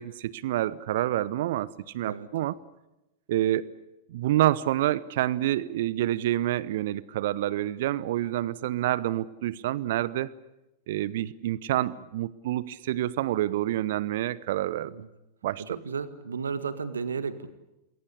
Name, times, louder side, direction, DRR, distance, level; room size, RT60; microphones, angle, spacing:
voice 1, 0.0-2.6 3.3-3.7 4.1-10.3 10.9-14.9 15.4-15.8, right 14 dB, 55° right, 20 dB, 0.9 m, -28 dB
voice 2, 15.6-17.5, right 5 dB, 70° right, 12 dB, 1.8 m, -33 dB
28.0 x 21.5 x 8.4 m, 0.97 s
figure-of-eight pair, 90°, 0 cm